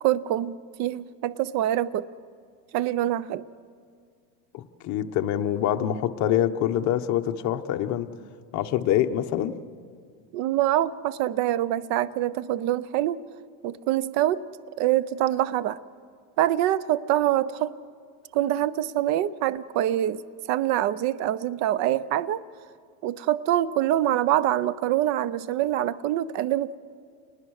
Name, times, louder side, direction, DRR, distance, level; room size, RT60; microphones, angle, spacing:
voice 1, 0.0-2.1 2.7-3.4 10.3-13.2 13.6-14.4 14.8-15.8 16.4-17.7 18.3-20.2 20.5-22.4 23.0-26.7, right 13 dB, 40° right, 19 dB, 0.6 m, -25 dB
voice 2, 4.5-8.1 8.5-9.6, left 11 dB, 40° left, 6 dB, 1.1 m, -25 dB
29.5 x 20.0 x 6.5 m, 2.1 s
supercardioid pair, 145°, 45 cm